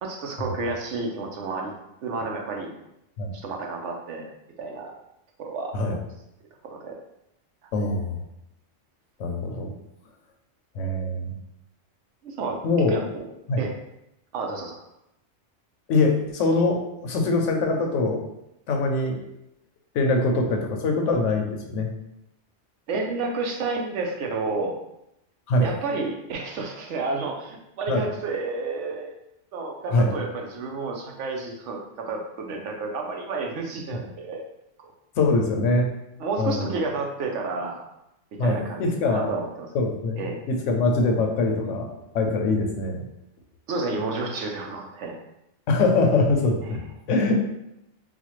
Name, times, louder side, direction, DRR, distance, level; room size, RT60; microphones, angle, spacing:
voice 1, 0.0-1.7 2.0-2.7 3.3-4.3 4.6-4.9 5.4-6.0 6.6-7.0 12.2-12.6 12.9-13.2 13.6-13.7 14.3-14.8 22.9-24.8 25.6-29.1 29.5-34.4 34.8-34.9 36.2-37.8 38.4-39.7 40.2-40.4 43.7-45.1, right 3 dB, 75° right, 1 dB, 1.0 m, -30 dB
voice 2, 7.7-8.2 9.2-9.7 10.7-11.4 12.6-12.9 13.5-13.6 15.9-18.2 18.7-19.2 19.9-21.9 25.5-25.7 27.9-28.1 29.9-30.1 33.9-34.0 35.2-35.9 36.4-36.7 38.4-39.3 39.7-41.9 42.1-43.0 45.7-46.8 47.1-47.5, left 2 dB, 80° left, 3 dB, 1.0 m, -23 dB
4.0 x 2.2 x 3.0 m, 0.84 s
omnidirectional pair, 1.2 m